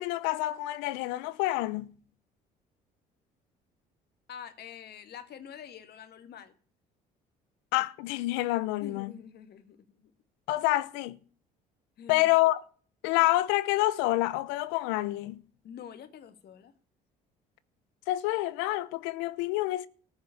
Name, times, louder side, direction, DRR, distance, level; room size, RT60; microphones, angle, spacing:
voice 1, 0.0-1.9 7.7-9.1 10.5-11.2 12.1-12.6 13.0-15.4 18.1-19.9, left 17 dB, 80° left, 0.8 m, -27 dB
voice 2, 4.3-6.5 8.8-9.8 12.0-12.3 15.6-16.7, left 8 dB, 60° left, 2.1 m, -46 dB
14.5 x 6.2 x 8.5 m
hypercardioid pair, 65°, 19 cm